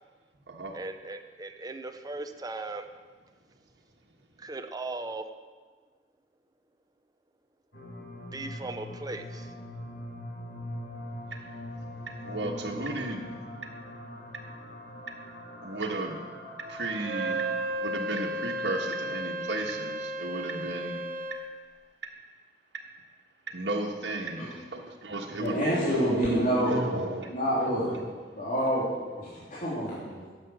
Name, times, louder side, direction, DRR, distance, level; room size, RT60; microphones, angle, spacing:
voice 1, 0.7-2.9 4.4-5.3 8.3-9.5, right 2 dB, 20° right, 7 dB, 0.7 m, -38 dB
sound 1, 7.7-17.7, left 1 dB, 75° left, 1.9 m, -42 dB
voice 2, 12.2-13.3 15.6-16.2 16.7-17.5 17.8-21.0 23.5-28.1, right 2 dB, 85° right, 0 dB, 1.4 m, -34 dB
Wind instrument woodwind instrument, 17.0-21.5, right 1 dB, 55° right, 0.9 m, -33 dB
voice 3, 25.3-26.9 27.3-27.9 28.4-28.9 29.2-30.3, equal, 45° left, -9 dB, 3.0 m, -28 dB
11.0 x 7.6 x 7.7 m, 1.4 s
head